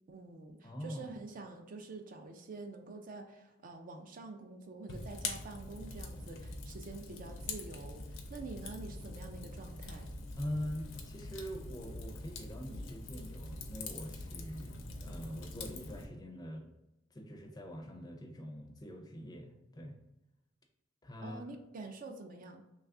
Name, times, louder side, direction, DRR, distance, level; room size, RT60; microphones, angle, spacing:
voice 1, 0.1-10.1 21.2-22.6, right 3 dB, 45° right, 4 dB, 0.4 m, -47 dB
voice 2, 0.6-1.1 10.4-16.6 17.1-20.0 21.0-21.4, equal, 20° left, 1 dB, 0.4 m, -43 dB
Fire, 4.9-16.0, left 2 dB, 75° left, 0.5 m, -44 dB
3.1 x 2.3 x 3.5 m, 0.94 s
head